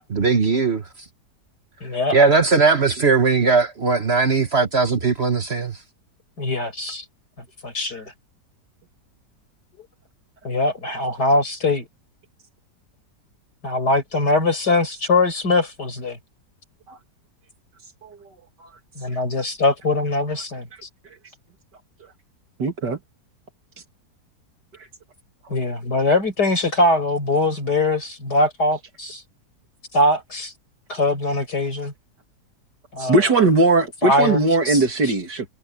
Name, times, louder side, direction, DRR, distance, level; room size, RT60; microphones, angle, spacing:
voice 1, 0.1-0.8 2.1-5.8, right 4 dB, 40° right, 1.4 m, -18 dB
voice 2, 1.8-2.2 6.4-7.0 7.6-8.1 10.4-11.9 13.6-16.2 19.0-20.7 25.5-29.2 29.9-30.5 30.9-31.9 32.9-33.2 34.0-35.1, left 2 dB, 70° left, 6.6 m, -22 dB
voice 3, 22.6-23.0 33.0-35.4, right 3 dB, 80° right, 3.1 m, -19 dB
omnidirectional pair, 1.8 m